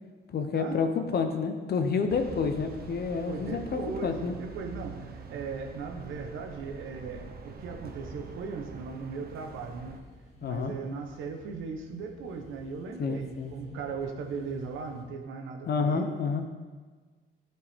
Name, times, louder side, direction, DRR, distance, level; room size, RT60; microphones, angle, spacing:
voice 1, 0.3-4.4 10.4-10.7 13.0-13.5 15.7-16.4, left 5 dB, 55° left, 6 dB, 0.8 m, -29 dB
sound 1, 2.1-10.0, right 5 dB, 50° right, 0.7 m, -45 dB
voice 2, 3.3-9.9 10.4-16.2, right 4 dB, 80° right, 4 dB, 0.9 m, -38 dB
sound 2, 6.8-15.0, right 1 dB, 35° left, 1.9 m, -55 dB
11.0 x 4.5 x 3.6 m, 1.4 s
cardioid pair, 90°, 20 cm